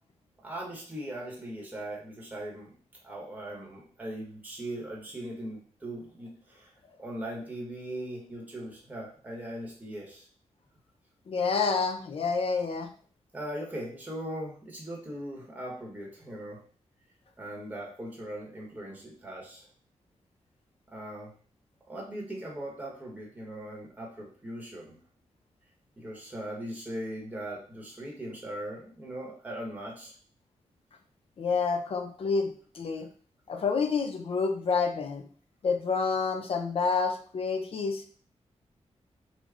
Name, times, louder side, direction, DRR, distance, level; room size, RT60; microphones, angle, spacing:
voice 1, 0.4-2.7 3.0-6.7 7.0-10.3 13.3-16.6 17.4-19.7 20.9-21.3 21.9-25.0 26.0-30.1, right 1 dB, 15° right, -2 dB, 0.9 m, -39 dB
voice 2, 11.3-12.9 31.4-33.1 33.5-35.2 35.6-38.0, left 5 dB, 55° left, 5 dB, 0.5 m, -28 dB
3.3 x 2.0 x 3.6 m, 0.44 s
wide cardioid pair, 125°, 12 cm